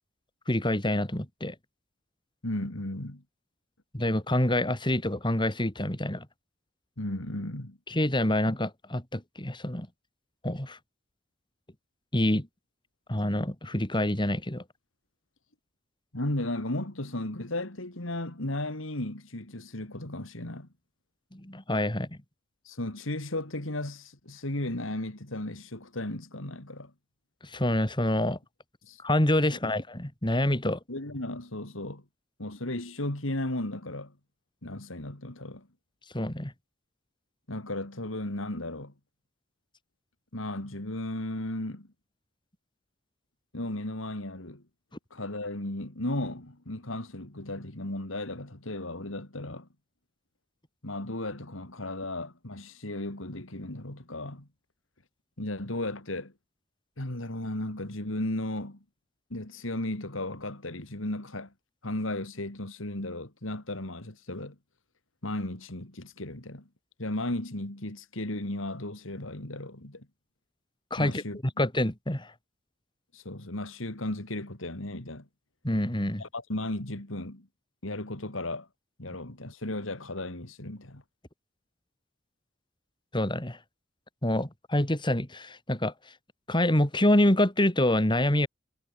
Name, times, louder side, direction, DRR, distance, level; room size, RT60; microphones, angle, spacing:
voice 1, 0.5-1.5 3.9-6.3 7.9-9.9 10.4-10.8 12.1-12.5 13.1-14.6 21.3-22.2 27.4-28.4 29.0-30.8 36.1-36.5 70.9-71.2 71.6-72.3 75.6-76.2 79.1-79.2 83.1-83.6 84.2-85.9 86.5-88.5, left 1 dB, 25° left, 3.4 m, -26 dB
voice 2, 2.4-3.2 7.0-7.8 16.1-20.7 22.6-26.9 28.8-29.0 30.6-32.0 32.4-34.1 34.6-35.7 37.5-38.9 40.3-41.9 43.5-44.6 45.1-49.7 50.8-54.5 55.4-56.3 57.0-58.8 59.3-61.5 61.8-64.5 65.2-66.7 67.0-70.1 71.0-71.4 73.1-75.3 76.2-77.5 77.8-78.7 79.0-81.0, left 1 dB, 80° left, 3.3 m, -35 dB
head